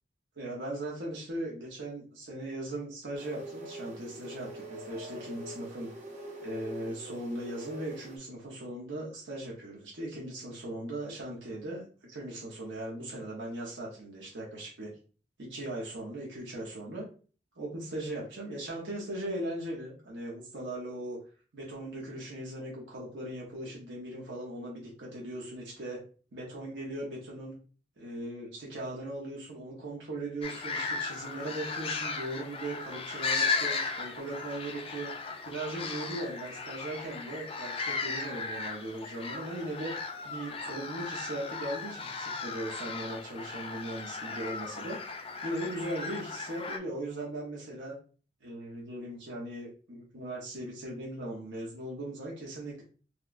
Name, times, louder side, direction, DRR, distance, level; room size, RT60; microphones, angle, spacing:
voice 1, 0.4-5.9 6.4-11.8 12.1-14.9 15.4-17.1 17.5-21.2 21.5-26.0 26.3-27.5 28.0-35.1 35.4-45.0 45.4-47.9 48.4-52.8, right 1 dB, 80° right, -3 dB, 0.9 m, -39 dB
sound 1, 3.1-8.2, right 1 dB, 40° right, 0.8 m, -44 dB
sound 2, 30.4-46.8, left 4 dB, 30° left, 0.4 m, -36 dB
4.2 x 2.3 x 2.5 m, 0.39 s
head